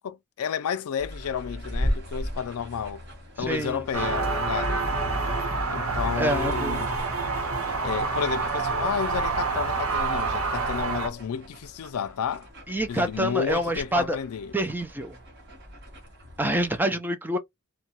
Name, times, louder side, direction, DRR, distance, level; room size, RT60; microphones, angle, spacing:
voice 1, 0.0-3.0 3.4-4.8 5.7-6.9 7.8-12.5 12.9-14.5, left 7 dB, 85° left, 0.4 m, -31 dB
sound 1, 1.0-16.8, equal, 50° right, 1.3 m, -38 dB
voice 2, 3.4-3.8 6.2-6.9 12.7-14.2 14.5-15.2 16.4-17.4, right 1 dB, 10° right, 0.4 m, -27 dB
sound 2, 3.9-11.1, right 3 dB, 75° right, 1.1 m, -27 dB
3.0 x 2.2 x 2.8 m
head